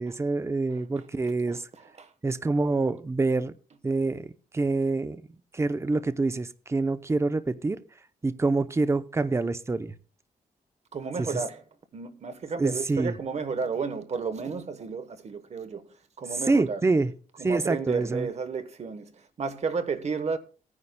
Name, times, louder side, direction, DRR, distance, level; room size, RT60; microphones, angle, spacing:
voice 1, 0.0-1.6 2.2-3.5 3.8-5.2 5.5-7.8 8.2-9.9 11.2-11.3 12.6-13.1 16.5-17.1 17.4-18.3, right 3 dB, 20° right, 0.6 m, -26 dB
voice 2, 10.9-11.6 11.9-15.9 16.2-16.8 17.4-20.4, right 5 dB, 50° right, 1.1 m, -32 dB
18.5 x 9.7 x 2.2 m
cardioid pair, 95°, 15 cm